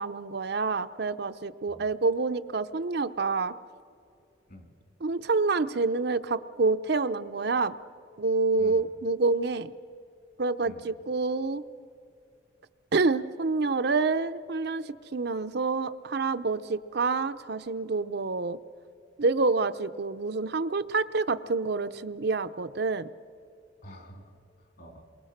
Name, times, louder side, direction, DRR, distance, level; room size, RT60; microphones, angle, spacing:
voice 1, 0.0-3.5 5.0-7.7 8.2-9.7 10.4-11.6 12.9-18.6 19.2-23.1, right 3 dB, 55° right, 10 dB, 0.6 m, -27 dB
voice 2, 23.8-25.0, equal, 50° left, 4 dB, 3.6 m, -49 dB
28.5 x 23.0 x 6.6 m, 2.5 s
head